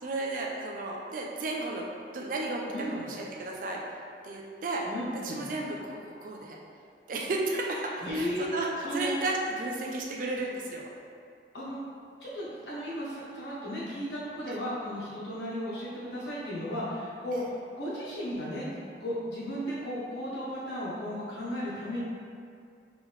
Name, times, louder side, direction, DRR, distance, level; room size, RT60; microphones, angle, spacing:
voice 1, 0.0-1.9 2.1-2.6 2.9-3.8 4.2-4.9 5.2-6.6 7.1-10.9 14.5-14.6 17.3-17.5, right 2 dB, 50° right, -1 dB, 0.4 m, -33 dB
voice 2, 2.7-3.0 4.8-5.4 8.0-8.5 8.8-9.2 11.5-11.8 12.2-18.7 19.0-22.0, equal, 75° left, -7 dB, 1.1 m, -35 dB
3.4 x 3.2 x 3.5 m, 2.3 s
head